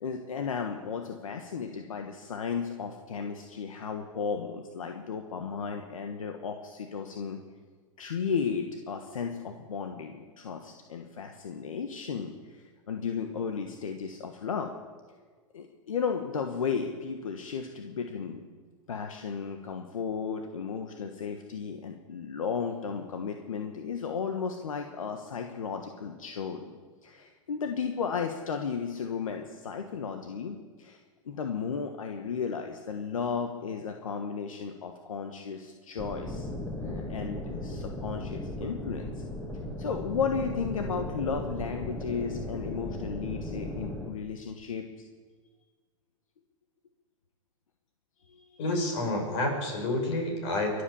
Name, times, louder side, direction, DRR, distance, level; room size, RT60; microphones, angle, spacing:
voice 1, 0.0-7.4 8.0-14.7 15.5-18.4 18.9-26.8 27.0-31.0 31.2-36.5 36.8-39.2 39.8-44.9 48.3-48.5, left 6 dB, 90° left, 4 dB, 1.3 m, -34 dB
sound 1, 36.0-44.1, left 1 dB, 10° left, 2.0 m, -36 dB
voice 2, 48.6-50.8, left 2 dB, 60° left, 2 dB, 6.0 m, -29 dB
23.0 x 8.5 x 7.0 m, 1.5 s
hypercardioid pair, 120°, 17 cm